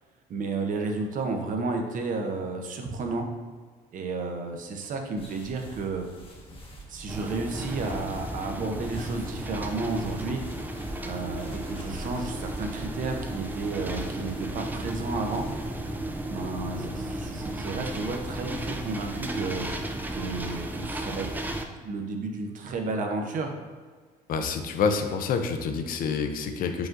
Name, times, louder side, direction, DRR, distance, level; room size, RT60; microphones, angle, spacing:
voice 1, 0.3-3.3 3.9-6.1 6.9-10.4 11.0-15.5 16.3-19.7 20.1-21.3 21.8-23.5, right 3 dB, 50° right, 4 dB, 0.6 m, -32 dB
sound 1, 5.2-15.7, equal, 30° left, 0.9 m, -45 dB
sound 2, 7.1-21.6, right 1 dB, 10° right, 0.3 m, -34 dB
voice 2, 24.3-26.9, left 5 dB, 55° left, 6 dB, 0.4 m, -27 dB
4.8 x 3.8 x 2.5 m, 1.5 s
cardioid pair, 110°, 17 cm